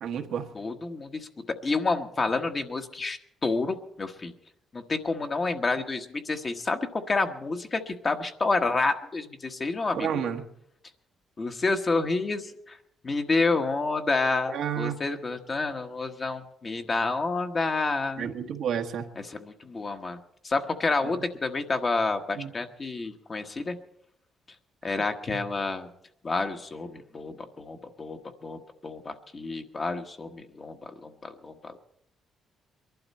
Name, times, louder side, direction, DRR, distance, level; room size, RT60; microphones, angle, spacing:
voice 1, 0.0-0.5 9.9-10.4 14.5-14.9 18.2-19.0 22.4-22.5 25.3-25.4, right 8 dB, 75° right, 4 dB, 1.2 m, -30 dB
voice 2, 0.5-1.3 1.6-4.3 4.7-10.2 11.4-12.8 13.0-18.3 19.1-20.2 20.4-23.8 24.8-25.9 26.2-31.8, left 3 dB, 35° left, 5 dB, 1.2 m, -29 dB
22.5 x 12.0 x 4.3 m, 0.75 s
cardioid pair, 90°, 0 cm